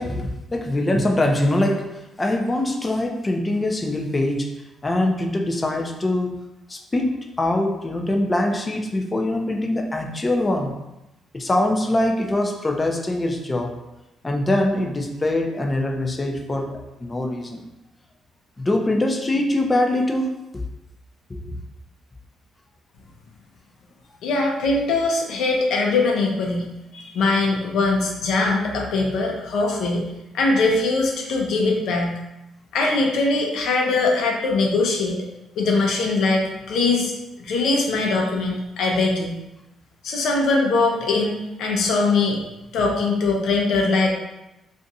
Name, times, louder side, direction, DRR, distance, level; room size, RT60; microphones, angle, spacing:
voice 1, 0.0-4.5 4.8-6.4 6.7-10.8 11.3-13.8 14.2-17.6 18.6-20.6 21.3-21.6, left 1 dB, 25° left, 2 dB, 0.5 m, -23 dB
voice 2, 24.2-32.2 32.7-35.2 35.6-37.1 37.4-39.3 40.0-42.4 42.7-44.1, left 3 dB, 75° left, 0 dB, 0.7 m, -21 dB
2.5 x 2.5 x 4.0 m, 0.94 s
cardioid pair, 85°, 0 cm